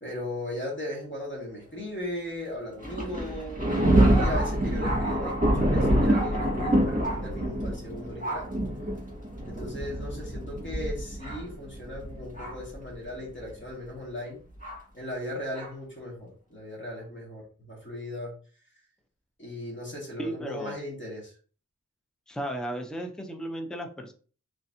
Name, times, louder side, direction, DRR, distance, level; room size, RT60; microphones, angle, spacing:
voice 1, 0.0-3.6 4.1-8.5 9.4-14.4 14.9-18.3 19.4-21.3, left 1 dB, 35° left, -3 dB, 1.7 m, -37 dB
Thunder, 2.8-12.7 13.5-13.6 14.6-14.8 15.5-15.7, right 1 dB, 25° right, 1.8 m, -26 dB
voice 2, 20.2-20.7 22.3-24.1, right 1 dB, ahead, 4 dB, 0.6 m, -35 dB
3.9 x 3.3 x 2.7 m, 0.40 s
wide cardioid pair, 40°, 33 cm